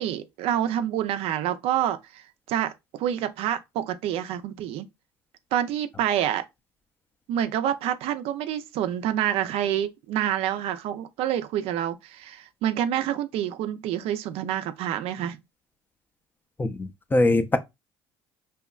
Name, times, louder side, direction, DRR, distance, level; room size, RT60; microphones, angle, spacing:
voice 1, 0.0-2.2 2.5-4.9 5.5-6.4 7.3-15.4, right 11 dB, 65° right, 0.4 m, -27 dB
voice 2, 16.6-17.6, left 2 dB, 15° left, 0.4 m, -22 dB
2.7 x 2.2 x 2.3 m
supercardioid pair, 85°, 11 cm